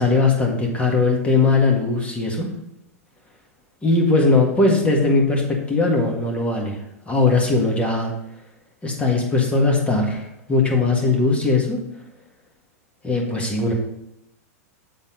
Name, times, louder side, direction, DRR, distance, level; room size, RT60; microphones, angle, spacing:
voice 1, 0.0-2.5 3.8-6.8 7.1-8.1 8.8-11.8 13.0-13.7, left 3 dB, 15° left, 0 dB, 1.8 m, -19 dB
7.8 x 4.0 x 5.3 m, 0.86 s
hypercardioid pair, 110°, 8 cm